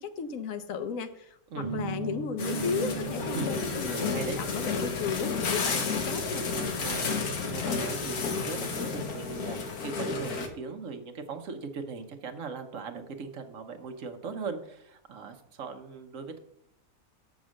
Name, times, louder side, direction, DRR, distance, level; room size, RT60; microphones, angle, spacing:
voice 1, 0.0-6.4, left 6 dB, 70° left, 10 dB, 1.1 m, -35 dB
sound 1, 1.6-7.5, right 2 dB, 25° left, 3.8 m, -39 dB
sound 2, 2.4-10.5, left 4 dB, 90° left, 1.6 m, -31 dB
voice 2, 3.9-4.4 6.8-7.2 7.5-16.4, right 5 dB, 65° right, 7 dB, 1.2 m, -39 dB
7.2 x 6.1 x 6.3 m, 0.76 s
omnidirectional pair, 1.5 m